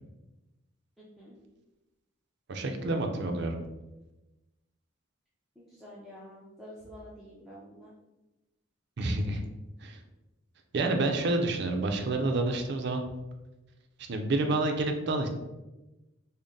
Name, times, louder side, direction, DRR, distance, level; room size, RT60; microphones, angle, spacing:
voice 1, 1.0-1.3 5.6-7.9, equal, ahead, -9 dB, 0.5 m, -49 dB
voice 2, 2.5-3.6 9.0-9.4 9.8-10.0 10.7-13.0 14.1-15.3, right 2 dB, 60° right, 4 dB, 0.5 m, -28 dB
3.8 x 2.1 x 3.5 m, 1.0 s
head